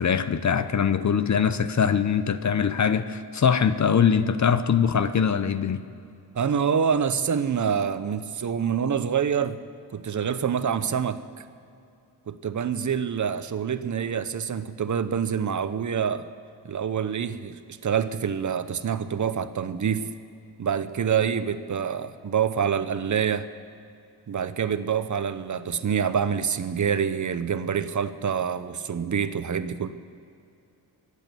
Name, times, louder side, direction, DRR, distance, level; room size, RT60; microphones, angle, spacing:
voice 1, 0.0-5.8, left 7 dB, 45° left, 12 dB, 0.8 m, -22 dB
voice 2, 6.3-9.6 9.9-11.4 12.3-16.3 16.6-20.1 20.6-23.5 24.3-29.9, right 7 dB, 45° right, 12 dB, 0.8 m, -26 dB
24.0 x 8.5 x 6.9 m, 2.6 s
cardioid pair, 85°, 40 cm